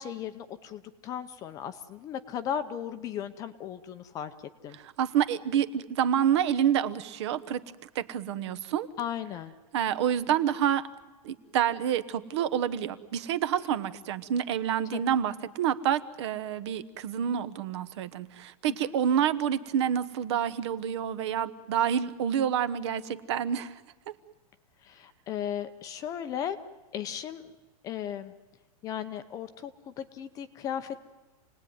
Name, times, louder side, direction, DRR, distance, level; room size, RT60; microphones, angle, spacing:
voice 1, 0.0-4.3 4.6-4.8 9.0-9.5 14.9-15.0 18.7-18.9 24.8-26.6 26.9-27.4 27.8-28.3 28.8-31.0, left 9 dB, 20° left, 10 dB, 0.7 m, -36 dB
voice 2, 4.7-8.9 9.7-10.9 11.2-23.7, right 9 dB, 45° right, 14 dB, 1.2 m, -28 dB
28.5 x 19.0 x 9.5 m, 1.2 s
supercardioid pair, 175°, 19 cm